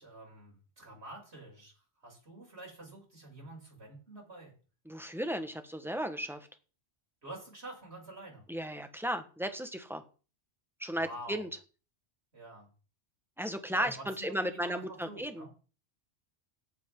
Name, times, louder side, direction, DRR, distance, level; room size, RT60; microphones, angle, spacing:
voice 1, 0.0-1.7 2.0-4.5 7.2-8.5 10.9-11.5 12.3-12.7 13.7-13.9 14.2-15.5, right 1 dB, 65° right, -4 dB, 7.5 m, -47 dB
voice 2, 4.8-6.5 8.5-10.0 10.8-11.5 13.4-15.5, equal, ahead, 7 dB, 1.4 m, -35 dB
17.5 x 8.7 x 3.8 m, 0.37 s
omnidirectional pair, 1.2 m